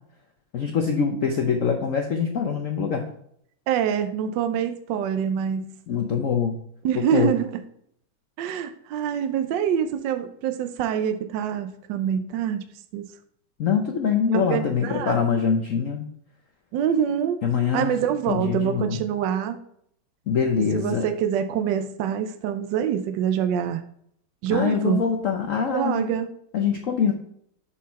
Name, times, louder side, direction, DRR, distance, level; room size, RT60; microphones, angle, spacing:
voice 1, 0.5-3.0 5.9-6.6 6.9-7.3 13.6-16.0 17.4-18.0 18.3-19.0 20.3-21.1 24.5-26.1 26.5-27.1, left 6 dB, 65° left, 3 dB, 0.7 m, -24 dB
voice 2, 3.7-5.8 6.8-7.6 8.4-13.0 14.3-15.2 16.7-17.4 17.7-19.6 20.6-23.8 24.4-25.0 25.7-26.3, right 9 dB, 70° right, 8 dB, 1.2 m, -25 dB
7.4 x 4.4 x 4.1 m, 0.70 s
omnidirectional pair, 2.3 m